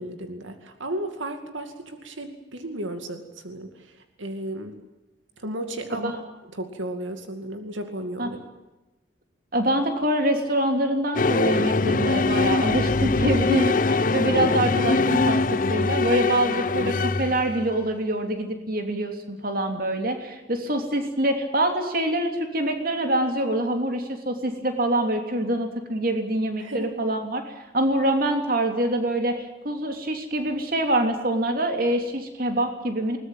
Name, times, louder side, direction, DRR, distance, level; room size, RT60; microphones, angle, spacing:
voice 1, 0.0-4.8 5.4-6.1 6.5-8.4 13.5-13.8 26.6-26.9, right 1 dB, 85° right, 6 dB, 2.4 m, -34 dB
voice 2, 9.5-33.2, right 1 dB, 50° right, 5 dB, 3.1 m, -25 dB
sound 1, 11.2-17.7, left 3 dB, 45° left, 0.7 m, -22 dB
21.5 x 19.5 x 9.1 m, 1.1 s
head